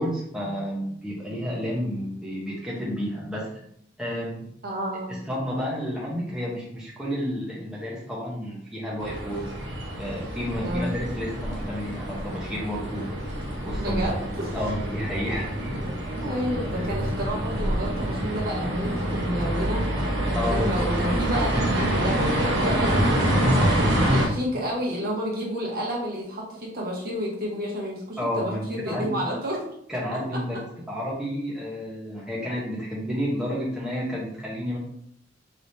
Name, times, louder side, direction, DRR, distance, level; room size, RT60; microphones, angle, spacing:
voice 1, 0.0-3.5 4.0-4.5 5.1-9.5 10.0-13.1 13.6-14.0 14.5-15.5 16.7-16.8 20.3-20.7 28.2-29.1 29.9-30.6 30.9-34.8, equal, 5° right, -5 dB, 0.9 m, -30 dB
voice 2, 4.6-5.2 10.6-10.9 13.8-14.6 16.2-19.8 20.3-23.7 24.1-29.6, equal, 55° right, -3 dB, 1.3 m, -30 dB
sound 1, 9.0-24.3, right 1 dB, 80° right, 1.1 m, -26 dB
4.8 x 3.3 x 2.7 m, 0.70 s
head